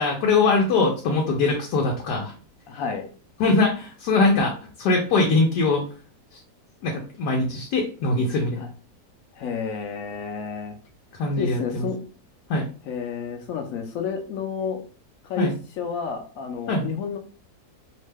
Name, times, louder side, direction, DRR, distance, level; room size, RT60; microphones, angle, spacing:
voice 1, 0.0-2.3 3.4-5.9 6.3-6.4 6.8-8.6 11.1-11.9 12.5-12.7 15.4-15.5 16.7-16.9, left 3 dB, 85° left, 1 dB, 1.2 m, -22 dB
voice 2, 2.7-3.1 8.6-8.7 9.3-10.8 11.4-12.0 12.9-14.8 15.2-15.5 15.8-17.2, left 6 dB, 70° left, 4 dB, 0.9 m, -30 dB
3.1 x 2.1 x 3.3 m, 0.38 s
omnidirectional pair, 1.7 m